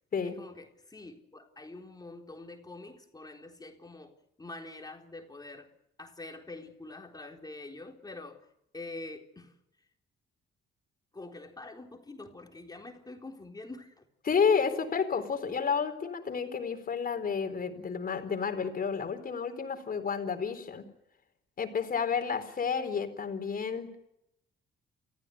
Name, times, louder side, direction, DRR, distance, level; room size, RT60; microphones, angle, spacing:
voice 1, 0.2-5.7 6.0-8.5 8.7-9.5 11.1-14.1, left 2 dB, 20° left, 2 dB, 4.0 m, -45 dB
voice 2, 14.2-20.8 21.6-23.9, left 6 dB, 45° left, 8 dB, 4.3 m, -30 dB
29.5 x 15.0 x 9.5 m, 0.85 s
cardioid pair, 90°, 20 cm